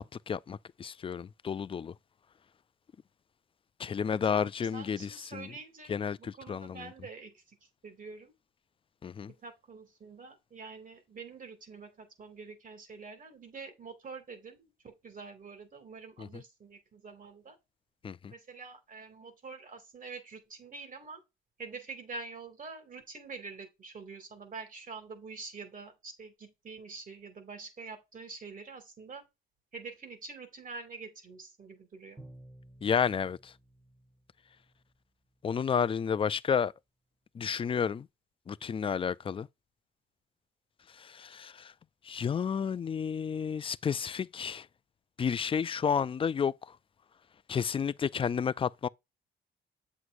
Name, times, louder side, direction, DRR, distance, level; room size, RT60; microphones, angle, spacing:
voice 1, 0.0-1.9 3.8-5.5 5.9-6.9 9.0-9.3 16.2-16.4 18.0-18.3 32.8-33.5 35.4-36.7 37.3-38.1 38.5-39.5 40.9-41.7 42.0-44.7 45.2-46.8 47.5-48.9, left 7 dB, 30° left, 0.3 m, -31 dB
voice 2, 4.0-5.9 6.2-7.6 7.8-8.3 9.4-17.6 18.3-21.2 21.6-29.3 29.7-32.2, right 4 dB, 45° right, 2.4 m, -46 dB
Bowed string instrument, 32.2-35.0, right 1 dB, 10° right, 1.6 m, -54 dB
8.0 x 6.0 x 2.6 m
cardioid pair, 90°, 20 cm